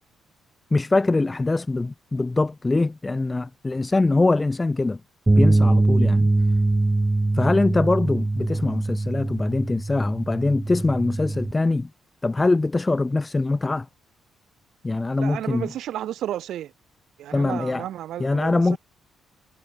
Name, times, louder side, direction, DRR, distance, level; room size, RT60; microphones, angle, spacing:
voice 1, 0.7-5.0 5.4-6.3 7.3-11.9 12.2-13.9 14.8-15.7 17.3-17.9 18.2-18.8, left 3 dB, 20° left, 2.5 m, -23 dB
sound 1, 5.3-11.5, right 2 dB, 15° right, 1.8 m, -22 dB
voice 2, 15.2-16.7 17.2-18.8, right 12 dB, 75° right, 2.9 m, -32 dB
cardioid pair, 90°, 0 cm